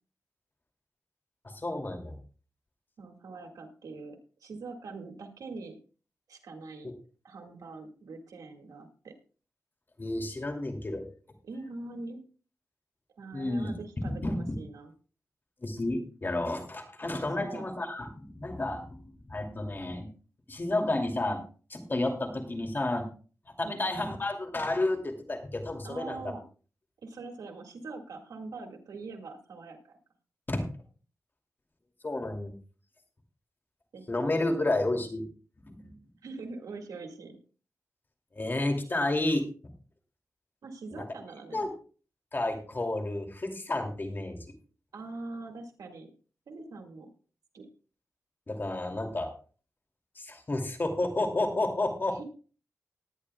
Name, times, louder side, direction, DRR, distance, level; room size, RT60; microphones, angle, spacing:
voice 1, 1.4-2.2 6.8-6.9 10.0-11.0 13.3-13.7 14.0-14.5 15.6-20.1 20.5-21.4 21.7-23.1 23.6-26.2 30.5-30.6 32.0-32.5 34.1-35.2 35.7-35.9 38.3-39.4 40.9-41.0 41.5-41.7 42.3-44.4 48.5-49.3 50.2-52.2, left 2 dB, 35° left, 4 dB, 2.6 m, -31 dB
voice 2, 3.0-5.8 6.3-6.9 7.2-9.1 11.4-12.2 13.2-14.9 17.4-17.6 23.6-23.8 25.8-26.4 27.0-30.0 33.9-34.2 34.5-35.0 36.2-37.4 40.6-41.6 44.9-46.1 46.5-47.1 47.5-47.7 52.1-52.2, right 3 dB, 90° right, 3 dB, 2.0 m, -43 dB
19.0 x 9.8 x 2.3 m, 0.38 s
cardioid pair, 65°, 6 cm